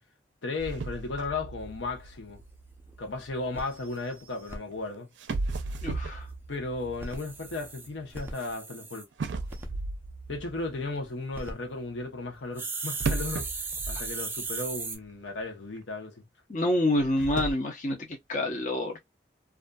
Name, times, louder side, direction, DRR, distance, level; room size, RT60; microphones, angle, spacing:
voice 1, 0.4-2.4 3.0-5.1 6.5-9.1 10.3-13.5 13.9-16.2, left 3 dB, 85° left, 0.8 m, -35 dB
sound 1, 0.6-3.7 4.7-4.8 5.2-8.5 9.2-11.1 13.0-14.8 15.0-15.1 15.8-15.9 16.9-17.5, right 3 dB, 80° right, 0.4 m, -36 dB
read pendrive, 2.4-2.5 2.9-3.0 3.2-3.3 3.5-4.6 6.9-9.0 9.5-9.7 11.1-11.5 12.6-15.0, right 3 dB, 10° right, 0.4 m, -37 dB
voice 2, 5.8-6.3 16.5-19.0, left 1 dB, 40° left, 0.7 m, -27 dB
2.5 x 2.4 x 2.2 m
head